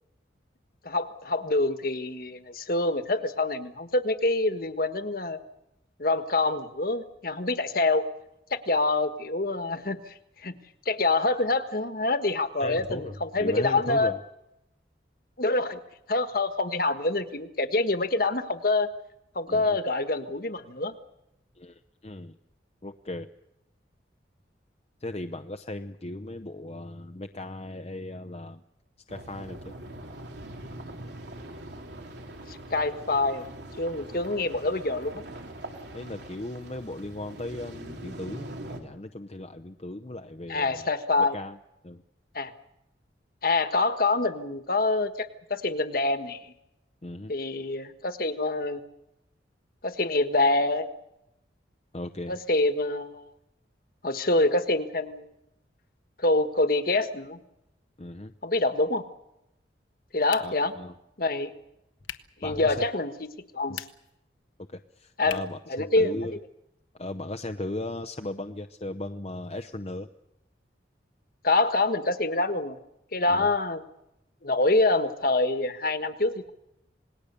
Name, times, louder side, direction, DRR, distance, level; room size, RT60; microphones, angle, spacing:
voice 1, 0.8-5.4 6.0-8.0 8.5-10.6 10.8-14.1 15.4-15.8 16.1-18.9 19.3-20.9 32.5-33.5 33.8-35.2 40.5-41.4 42.3-42.5 43.4-46.5 47.3-48.8 49.8-50.9 52.3-53.3 54.0-55.3 56.2-57.4 58.4-59.0 60.1-60.7 61.2-61.5 62.4-63.3 63.5-63.8 65.2-65.4 65.7-66.3 71.4-72.8 73.1-73.8 74.4-76.5, left 2 dB, 50° left, 9 dB, 1.5 m, -26 dB
voice 2, 12.6-14.2 19.5-19.8 21.5-22.4 22.8-23.3 25.0-28.6 29.1-29.7 35.9-40.9 41.2-41.6 41.8-42.0 47.0-47.3 51.9-52.4 58.0-58.3 60.4-60.9 62.4-62.8 63.7-63.8 64.7-66.4 66.9-70.1 73.3-73.5, left 1 dB, 35° left, 7 dB, 0.7 m, -37 dB
sound 1, 29.1-38.8, right 1 dB, 65° right, 3.3 m, -42 dB
sound 2, 60.3-60.8 62.0-62.4 63.6-64.2 65.3-65.7, left 9 dB, 90° left, 1.3 m, -40 dB
27.5 x 20.0 x 6.9 m, 0.87 s
head